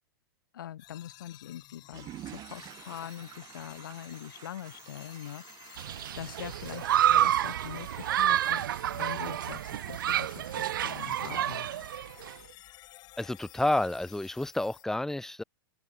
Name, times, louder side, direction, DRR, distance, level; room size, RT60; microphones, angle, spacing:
voice 1, 0.5-11.7, left 11 dB, 70° left, 1.3 m, -43 dB
sound 1, 0.8-14.8, left 17 dB, 35° left, 2.3 m, -53 dB
Water / Toilet flush, 1.8-9.6, right 14 dB, 30° right, 1.5 m, -50 dB
Human group actions, 5.8-12.3, right 12 dB, 70° right, 0.5 m, -29 dB
voice 2, 13.2-15.4, left 1 dB, 5° left, 0.5 m, -30 dB
open air
hypercardioid pair, 110°, 11 cm